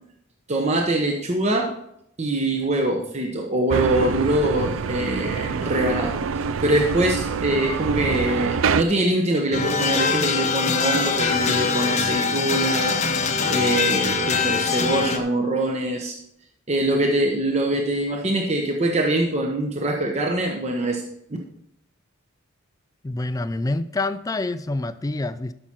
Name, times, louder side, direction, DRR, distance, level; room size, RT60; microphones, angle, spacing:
voice 1, 0.5-1.7 2.2-13.0 13.5-16.2 16.7-21.0, right 1 dB, 30° right, 1 dB, 0.9 m, -23 dB
sound 1, 3.7-8.8, right 5 dB, 75° right, 0.4 m, -26 dB
sound 2, 9.5-15.2, left 5 dB, 35° left, 0.8 m, -23 dB
voice 2, 23.0-25.5, left 2 dB, 15° left, 13 dB, 0.3 m, -27 dB
13.0 x 6.0 x 4.4 m, 0.77 s
head